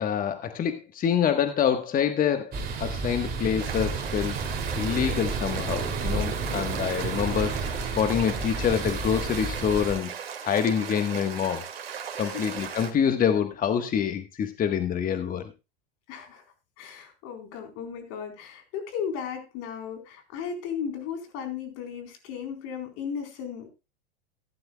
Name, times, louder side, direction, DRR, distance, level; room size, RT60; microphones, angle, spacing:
voice 1, 0.0-4.4 4.7-10.1 10.4-11.6 12.2-15.5, left 8 dB, 30° left, 7 dB, 1.4 m, -26 dB
sound 1, 2.5-9.9, right 4 dB, 30° right, 2.9 m, -31 dB
sound 2, 3.6-12.9, right 7 dB, 80° right, 2.2 m, -37 dB
voice 2, 16.1-16.4 16.8-23.7, left 7 dB, 50° left, 5 dB, 4.1 m, -35 dB
16.0 x 11.5 x 2.3 m, 0.27 s
hypercardioid pair, 95°, 30 cm